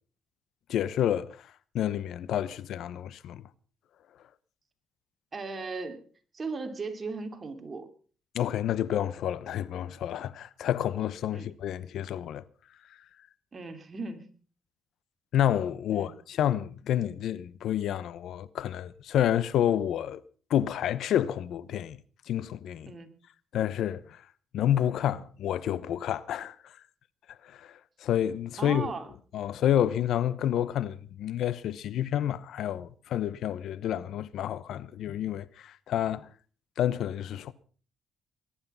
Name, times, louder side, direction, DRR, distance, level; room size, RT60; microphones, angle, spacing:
voice 1, 0.7-1.5 1.7-3.4 8.3-12.4 15.3-20.2 20.5-22.0 22.3-22.9 23.5-24.2 24.5-26.7 27.4-28.9 29.3-36.3 36.8-37.5, left 11 dB, 75° left, 0.9 m, -29 dB
voice 2, 5.3-6.0 6.3-7.9 11.3-11.5 13.5-14.3 15.9-16.1 22.9-23.2 28.6-29.1, right 4 dB, 35° right, 3.0 m, -37 dB
21.0 x 11.5 x 5.6 m
cardioid pair, 90°, 0 cm